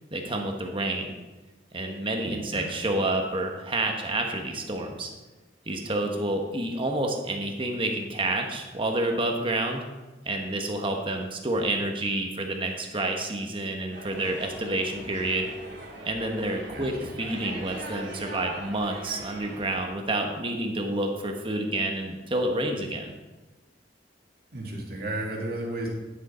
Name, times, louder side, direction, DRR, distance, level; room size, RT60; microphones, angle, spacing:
voice 1, 0.1-1.1 1.7-5.1 5.7-9.8 10.2-15.5 16.0-23.1, right 2 dB, 30° right, 3 dB, 1.2 m, -29 dB
voice 2, 2.3-2.7 16.7-16.9 24.5-25.9, right 1 dB, 55° right, -1 dB, 2.1 m, -33 dB
sound 1, 13.9-19.8, right 2 dB, 90° right, 2.7 m, -41 dB
10.5 x 6.6 x 4.4 m, 1.2 s
head